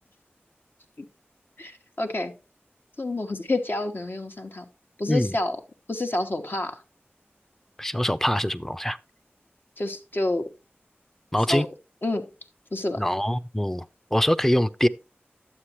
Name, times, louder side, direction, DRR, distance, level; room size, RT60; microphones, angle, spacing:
voice 1, 1.6-2.3 3.0-4.7 5.0-5.6 5.9-6.8 9.8-10.4 11.5-11.7 12.0-12.2 12.7-13.0, left 2 dB, 55° left, 1.3 m, -28 dB
voice 2, 7.8-9.0 11.3-11.7 13.0-13.8 14.1-14.9, equal, 10° left, 0.5 m, -23 dB
11.5 x 8.3 x 3.0 m
wide cardioid pair, 50°, 4 cm